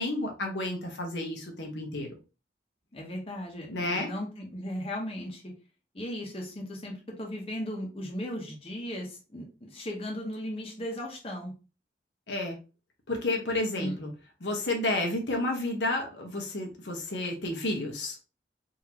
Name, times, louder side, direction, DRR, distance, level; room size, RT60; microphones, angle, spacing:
voice 1, 0.0-2.1 3.7-4.1 12.3-12.6 13.1-14.1 14.4-18.2, left 2 dB, 80° left, 1 dB, 0.9 m, -31 dB
voice 2, 2.9-5.5 5.9-6.9 7.2-11.5 13.8-14.0, equal, 35° left, 0 dB, 0.9 m, -36 dB
3.8 x 2.7 x 2.9 m, 0.32 s
head